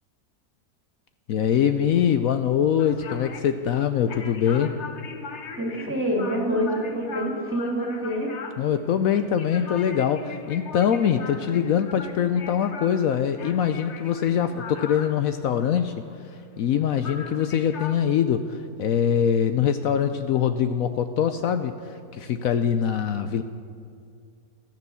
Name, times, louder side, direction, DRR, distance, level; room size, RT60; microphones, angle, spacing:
voice 1, 1.3-4.8 8.6-16.1 16.6-21.8 22.1-23.4, left 8 dB, 70° left, 9 dB, 1.0 m, -23 dB
sound 1, 2.8-16.8 17.0-18.0, left 5 dB, 50° left, 1.2 m, -40 dB
voice 2, 5.6-8.3, equal, 10° right, 0 dB, 2.4 m, -26 dB
13.5 x 13.5 x 7.0 m, 2.4 s
omnidirectional pair, 1.6 m